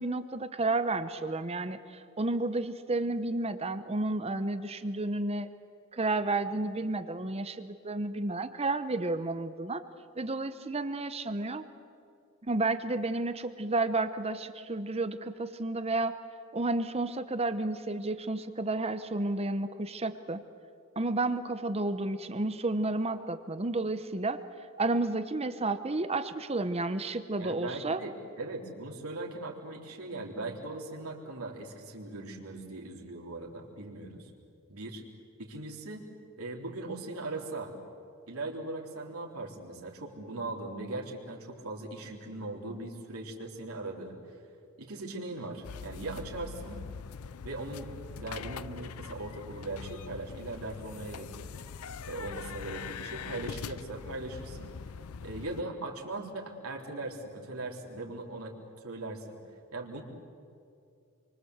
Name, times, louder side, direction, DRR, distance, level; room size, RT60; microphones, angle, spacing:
voice 1, 0.0-5.5 5.9-9.8 10.2-11.6 12.4-16.2 16.5-20.4 21.0-24.4 24.8-28.0, right 2 dB, 30° right, 10 dB, 0.9 m, -31 dB
voice 2, 27.4-34.3 34.7-35.0 35.4-36.1 36.4-37.7 38.3-44.4 44.8-46.8 47.4-47.9 48.2-51.5 52.0-54.7 55.2-58.5 58.8-59.2 59.7-60.0, right 2 dB, 75° right, 0 dB, 3.8 m, -39 dB
sound 1, 45.6-55.6, left 6 dB, 80° left, 0.5 m, -43 dB
27.0 x 24.5 x 8.1 m, 2.5 s
head